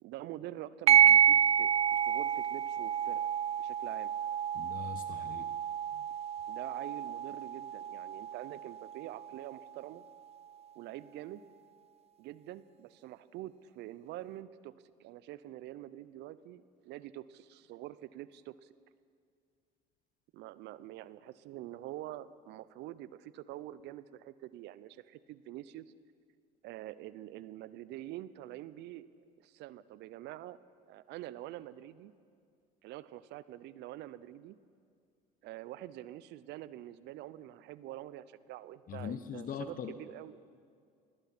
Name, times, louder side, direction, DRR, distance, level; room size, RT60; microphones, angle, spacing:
voice 1, 0.0-3.3 3.6-4.1 6.5-10.0 10.7-11.4 12.2-14.7 15.0-18.7 20.3-25.9 26.6-29.1 29.4-30.6 30.9-32.1 32.8-34.6 35.4-40.4, right 14 dB, 60° right, 17 dB, 0.8 m, -46 dB
sound 1, 0.9-9.9, right 8 dB, 30° right, 0.4 m, -29 dB
voice 2, 4.5-5.5 5.9-6.0 38.9-39.9, left 8 dB, 45° left, 9 dB, 1.2 m, -41 dB
29.0 x 20.5 x 4.4 m, 2.3 s
hypercardioid pair, 65°, 20 cm